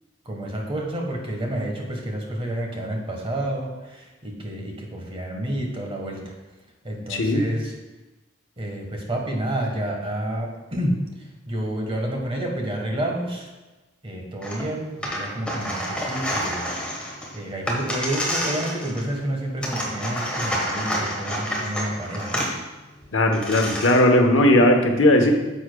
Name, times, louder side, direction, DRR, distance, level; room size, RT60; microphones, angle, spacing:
voice 1, 0.2-6.3 6.8-7.7 8.6-13.5 14.0-16.7 17.3-22.4, right 1 dB, 30° right, 0 dB, 1.3 m, -29 dB
voice 2, 7.1-7.4 23.1-25.3, left 1 dB, 80° left, 3 dB, 1.0 m, -17 dB
sound 1, 14.4-14.6 14.9-19.2 19.6-22.5 23.0-23.1 23.3-24.1, equal, 5° left, 1.2 m, -28 dB
9.7 x 7.1 x 2.3 m, 1.1 s
head